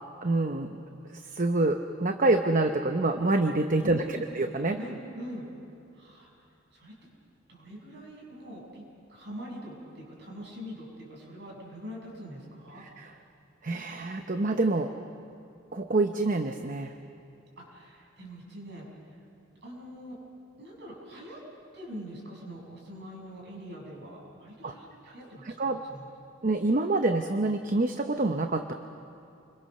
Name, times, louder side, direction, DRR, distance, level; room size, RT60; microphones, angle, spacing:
voice 1, 0.2-0.8 1.0-4.8 12.8-13.2 13.6-14.9 15.7-16.9 24.6-24.7 25.4-25.8 26.4-28.7, right 2 dB, 45° right, 6 dB, 0.8 m, -27 dB
voice 2, 3.8-4.3 4.7-5.5 5.9-6.3 6.7-6.9 7.5-8.8 9.1-12.8 17.6-18.9 19.6-20.2 20.6-21.4 21.7-26.1, equal, 65° right, -2 dB, 6.9 m, -43 dB
29.0 x 23.0 x 6.7 m, 2.6 s
head